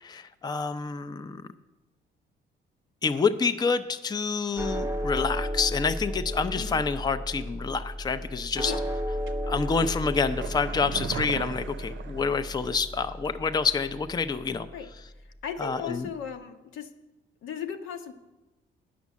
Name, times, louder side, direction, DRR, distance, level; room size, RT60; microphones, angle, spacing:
voice 1, 0.0-1.4 3.0-8.7 9.5-14.7 15.6-16.1, left 5 dB, 20° left, 10 dB, 0.5 m, -28 dB
sound 1, 4.6-15.0, equal, 15° right, 0.7 m, -34 dB
sound 2, 9.3-13.0 13.2-13.3, right 7 dB, 75° right, 0.7 m, -39 dB
voice 2, 15.4-16.9 17.4-18.1, left 7 dB, 85° left, 6 dB, 0.9 m, -36 dB
9.3 x 6.2 x 8.3 m, 1.0 s
cardioid pair, 90°, 20 cm